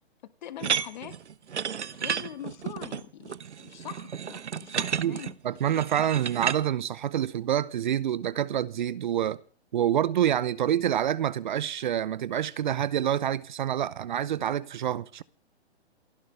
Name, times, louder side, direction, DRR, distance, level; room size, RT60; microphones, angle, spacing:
voice 1, 0.4-1.2 2.0-3.4 3.6-5.4, left 11 dB, 40° left, 1.6 m, -42 dB
sound 1, 0.6-6.6, right 7 dB, 85° right, 1.0 m, -32 dB
voice 2, 4.7-9.4 9.7-15.2, right 10 dB, 45° right, 0.8 m, -27 dB
28.5 x 11.5 x 3.4 m
hypercardioid pair, 145°, 34 cm